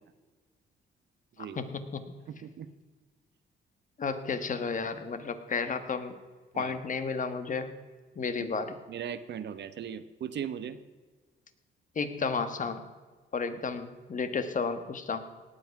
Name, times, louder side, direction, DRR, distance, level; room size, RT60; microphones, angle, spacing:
voice 1, 1.4-2.1 4.0-6.2 6.5-7.7 8.1-8.8 11.9-12.8 13.3-15.2, left 5 dB, 40° left, 10 dB, 1.5 m, -32 dB
voice 2, 2.3-2.7 6.5-6.7 8.9-10.8, right 8 dB, 60° right, 13 dB, 1.0 m, -38 dB
18.0 x 8.3 x 5.9 m, 1.4 s
cardioid pair, 90°, 20 cm